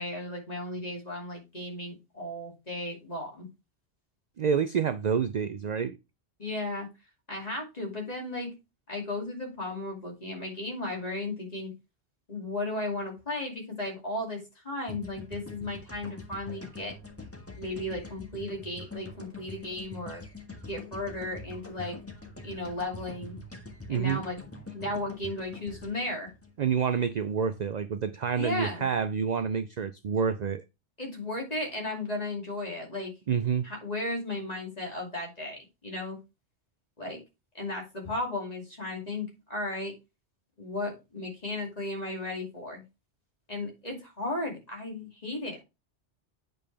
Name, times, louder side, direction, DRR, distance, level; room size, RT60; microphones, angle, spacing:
voice 1, 0.0-3.5 6.4-6.9 7.3-8.5 8.9-11.7 12.3-16.9 17.6-20.2 20.7-22.0 22.4-23.4 23.9-24.4 24.7-26.3 28.3-28.9 31.0-33.1 33.6-36.2 37.0-37.2 37.5-39.9 40.6-42.8 43.5-45.6, left 2 dB, 35° left, 2.7 m, -35 dB
voice 2, 4.4-6.0 23.9-24.2 26.6-30.6 33.3-33.7, right 7 dB, 55° right, 0.5 m, -28 dB
sound 1, 14.9-27.1, left 2 dB, 10° left, 1.5 m, -44 dB
8.5 x 5.3 x 3.3 m
omnidirectional pair, 1.1 m